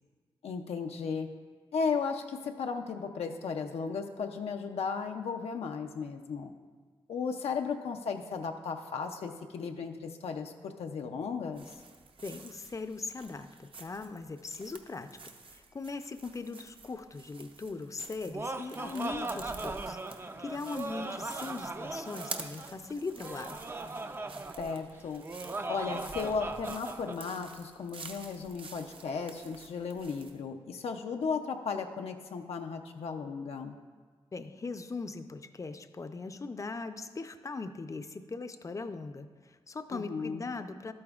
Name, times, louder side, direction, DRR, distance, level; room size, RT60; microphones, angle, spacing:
voice 1, 0.4-1.3 1.7-6.5 7.1-11.7 24.6-25.2 25.7-33.8 39.9-40.5, left 5 dB, 85° left, 4 dB, 0.5 m, -35 dB
sound 1, 11.5-30.4, right 4 dB, 60° right, 0.7 m, -50 dB
voice 2, 12.2-15.1 15.5-23.6 34.3-40.9, left 3 dB, 30° left, 10 dB, 0.5 m, -40 dB
Laughter, 18.0-27.2, right 2 dB, 25° right, 0.4 m, -39 dB
12.0 x 8.5 x 2.4 m, 1.5 s
cardioid pair, 75°, 10 cm